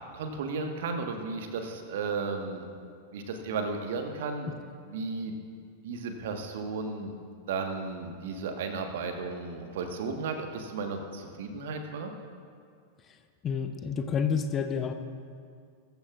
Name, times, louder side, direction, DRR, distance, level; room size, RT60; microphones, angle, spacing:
voice 1, 0.1-2.7 3.1-4.5 4.8-5.3 5.8-7.2 7.5-12.1, right 4 dB, 55° right, 5 dB, 1.4 m, -34 dB
voice 2, 13.4-14.9, left 6 dB, 25° left, 8 dB, 0.8 m, -29 dB
22.0 x 14.0 x 2.5 m, 2.2 s
figure-of-eight pair, 90°, 0 cm